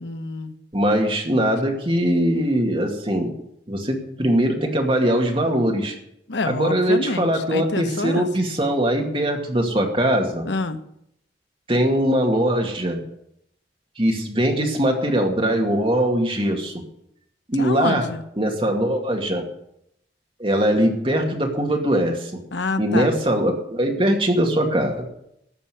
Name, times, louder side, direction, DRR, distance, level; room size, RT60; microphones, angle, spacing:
voice 1, 0.0-0.5 6.3-8.3 10.5-10.8 17.6-18.2 22.5-23.1, left 3 dB, 85° left, 9 dB, 1.1 m, -27 dB
voice 2, 0.7-3.3 3.7-5.9 6.5-10.5 11.7-13.0 14.0-16.7 17.5-18.1 18.4-19.4 20.4-22.4 22.8-25.1, right 1 dB, 30° right, 2 dB, 2.2 m, -21 dB
14.0 x 5.7 x 9.6 m, 0.75 s
head